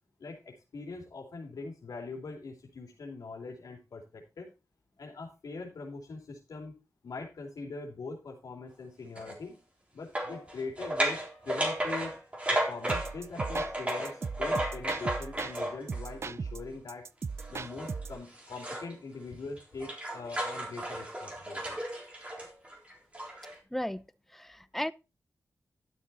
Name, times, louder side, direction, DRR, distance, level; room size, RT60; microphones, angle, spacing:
voice 1, 0.2-4.5 5.0-6.7 7.0-9.5 9.9-12.1 12.5-17.0 17.5-21.8, left 3 dB, 80° left, 2.9 m, -42 dB
sound 1, 9.2-9.4 10.2-16.1 17.4-18.9 19.3-23.6, right 1 dB, 20° right, 3.6 m, -34 dB
sound 2, 12.9-15.6 15.9-18.2, right 5 dB, 45° right, 0.4 m, -38 dB
voice 2, 23.7-24.0 24.3-24.9, equal, 5° left, 0.6 m, -34 dB
12.0 x 6.6 x 4.2 m
wide cardioid pair, 110°, 6 cm